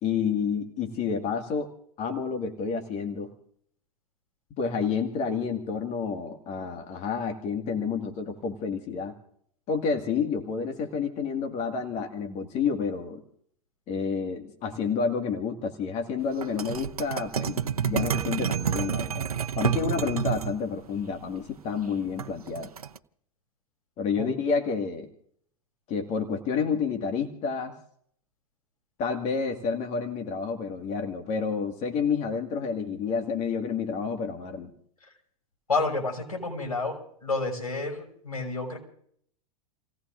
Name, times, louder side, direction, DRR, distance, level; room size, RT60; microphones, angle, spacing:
voice 1, 0.0-1.7 2.0-3.3 4.6-9.1 9.7-13.2 13.9-19.3 19.6-22.7 24.0-25.1 25.9-27.7 29.0-34.7, left 5 dB, 35° left, 4 dB, 2.0 m, -29 dB
sound 1, 16.4-20.5 22.2-23.0, right 8 dB, 80° right, 0.8 m, -29 dB
voice 2, 35.7-37.0 37.2-38.8, left 3 dB, 85° left, 0 dB, 6.0 m, -29 dB
29.5 x 17.5 x 2.6 m, 0.65 s
hypercardioid pair, 95°, 18 cm